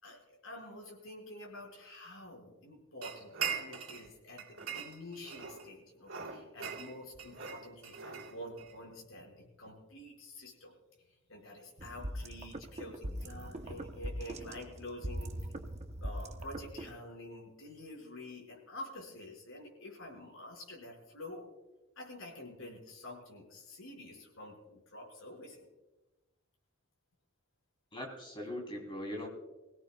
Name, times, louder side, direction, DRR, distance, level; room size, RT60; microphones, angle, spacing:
voice 1, 0.0-10.7 11.0-15.4 16.0-21.5 22.0-25.7, left 1 dB, 70° left, -1 dB, 5.5 m, -48 dB
sound 1, 3.0-4.1 4.4-5.7 6.1-8.7, right 7 dB, 65° right, 3.1 m, -40 dB
sound 2, 11.8-16.9, equal, 30° right, 0.9 m, -41 dB
voice 2, 27.9-29.3, left 1 dB, 25° left, 1 dB, 3.3 m, -40 dB
24.5 x 17.0 x 2.3 m, 1.1 s
head